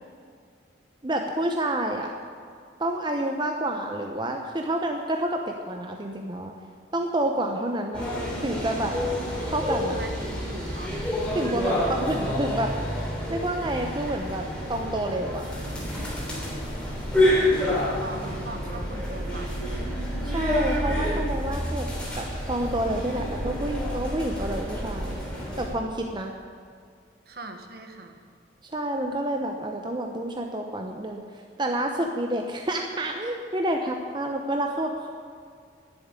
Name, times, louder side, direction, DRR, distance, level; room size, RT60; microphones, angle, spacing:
voice 1, 1.0-2.1 2.8-6.5 6.9-8.0 8.4-9.0 9.5-10.0 11.3-12.7 13.3-15.4 20.2-21.9 22.2-25.2 25.6-26.3 28.7-31.2 31.6-35.1, right 1 dB, 25° right, 3 dB, 0.8 m, -29 dB
sound 1, 7.9-25.7, left 1 dB, 5° left, 3.2 m, -28 dB
voice 2, 10.0-11.0 17.4-20.0 27.3-28.2, right 2 dB, 55° right, 5 dB, 1.3 m, -41 dB
11.0 x 7.6 x 9.6 m, 2.2 s
head